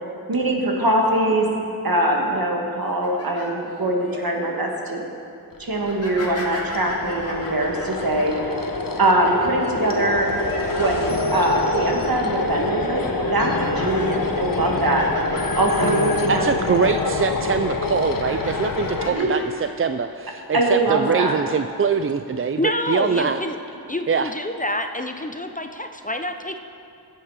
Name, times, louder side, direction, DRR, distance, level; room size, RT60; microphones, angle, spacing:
voice 1, 0.3-1.5 1.8-5.0 5.6-8.3 9.0-10.3 10.8-11.0 11.3-15.1 15.6-16.9 19.0-19.3 20.5-21.3, right 1 dB, 60° right, 0 dB, 1.8 m, -22 dB
sound 1, 2.8-4.2 4.7-5.0 5.8-11.5 11.9-12.4 12.8-17.5 17.8-19.7 20.1-20.3 21.0-21.5, left 2 dB, 40° left, 2.3 m, -38 dB
sound 2, 5.5-19.1, left 3 dB, 60° left, 1.0 m, -26 dB
voice 2, 16.3-23.4 24.1-24.3, right 6 dB, 35° right, 9 dB, 0.4 m, -23 dB
voice 3, 22.6-23.6 23.9-26.6, left 1 dB, 20° left, 6 dB, 0.6 m, -27 dB
15.5 x 7.4 x 4.9 m, 2.6 s
wide cardioid pair, 45°, 39 cm